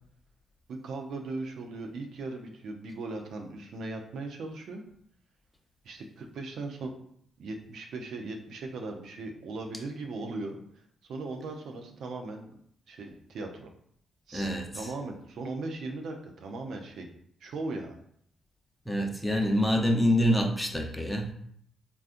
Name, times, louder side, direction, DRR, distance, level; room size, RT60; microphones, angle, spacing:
voice 1, 0.7-4.8 5.8-6.9 7.4-10.6 11.1-13.7 14.3-14.5 14.7-17.1 17.4-18.0, right 3 dB, 70° right, 3 dB, 0.5 m, -38 dB
voice 2, 14.3-14.9 18.9-21.3, equal, 10° left, 2 dB, 0.6 m, -26 dB
3.7 x 2.3 x 2.5 m, 0.67 s
supercardioid pair, 50°, 0 cm